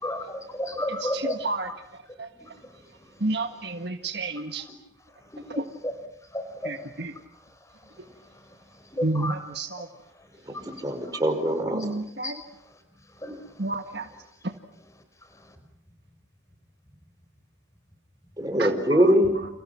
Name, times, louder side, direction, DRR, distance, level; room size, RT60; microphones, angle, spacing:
voice 1, 0.0-1.3 5.5-5.9 6.3-6.7 9.1-9.3 12.2-12.3 13.2-13.3, left 1 dB, 15° left, 7 dB, 5.0 m, -31 dB
voice 2, 1.0-1.7 3.2-4.6 6.7-7.1 9.0-9.8 11.8-12.3 13.6-14.0 18.6-18.7, right 2 dB, 55° right, 6 dB, 1.7 m, -30 dB
voice 3, 10.8-11.9 18.4-19.3, equal, 20° right, 4 dB, 5.4 m, -22 dB
30.0 x 30.0 x 5.9 m, 0.78 s
head